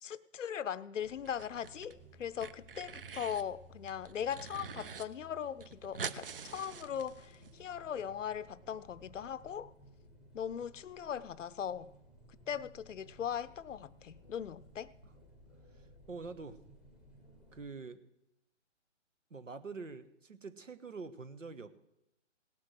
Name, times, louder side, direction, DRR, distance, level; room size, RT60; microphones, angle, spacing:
voice 1, 0.0-9.7 10.3-11.9 12.5-14.9, left 8 dB, 75° left, 0.6 m, -39 dB
sound 1, 1.0-17.7, equal, ahead, 1.0 m, -58 dB
sound 2, 1.3-1.9 2.2-3.5 3.9-5.0 5.3-5.4 5.6-7.5, right 6 dB, 45° right, 0.7 m, -44 dB
voice 2, 15.8-16.6 17.5-18.0 19.3-21.7, right 4 dB, 90° right, 1.3 m, -45 dB
17.5 x 6.1 x 7.6 m
figure-of-eight pair, 150°, 38 cm